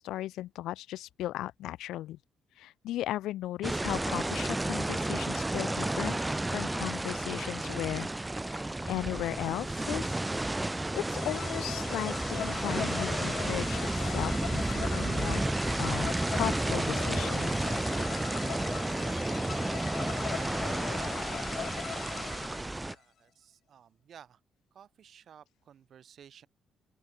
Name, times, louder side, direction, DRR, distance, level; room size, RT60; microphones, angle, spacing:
voice 1, 0.0-2.2 2.6-8.1 8.4-10.6 10.9-15.4 15.8-17.9, left 14 dB, 85° left, 0.8 m, -36 dB
sound 1, 3.6-22.9, right 2 dB, 15° right, 0.5 m, -32 dB
sound 2, 9.1-22.6, right 5 dB, 35° right, 3.4 m, -58 dB
sound 3, 11.2-22.9, left 10 dB, 65° left, 1.8 m, -40 dB
voice 2, 22.9-24.4 24.7-26.5, right 8 dB, 60° right, 5.3 m, -55 dB
open air
cardioid pair, 90°, 0 cm